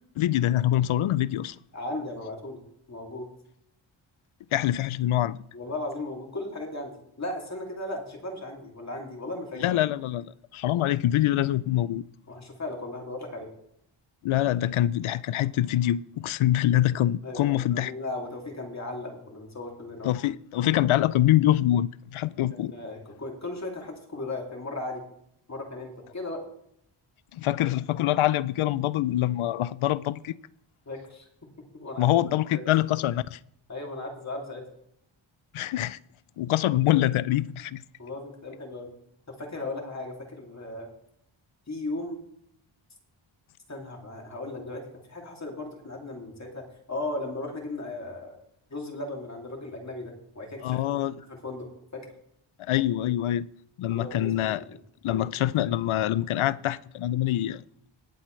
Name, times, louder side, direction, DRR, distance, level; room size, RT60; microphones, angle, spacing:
voice 1, 0.2-1.6 4.5-5.4 9.6-12.1 14.2-17.9 20.0-22.7 27.3-30.4 32.0-33.4 35.5-36.0 36.4-37.8 50.6-51.1 52.6-53.5 53.8-54.6 55.0-57.6, left 13 dB, 80° left, 0.5 m, -25 dB
voice 2, 1.7-2.6 2.9-3.3 5.5-9.8 12.3-13.5 17.2-20.1 22.5-25.0 25.5-26.4 30.9-31.3 31.7-32.1 32.5-32.6 33.7-34.6 38.0-38.9 39.3-40.9 41.7-42.2 43.7-48.4 48.7-50.8 51.2-52.1 53.9-54.8 55.1-55.2, left 2 dB, 35° left, 2.6 m, -36 dB
19.5 x 7.5 x 3.2 m
wide cardioid pair, 115°, 48 cm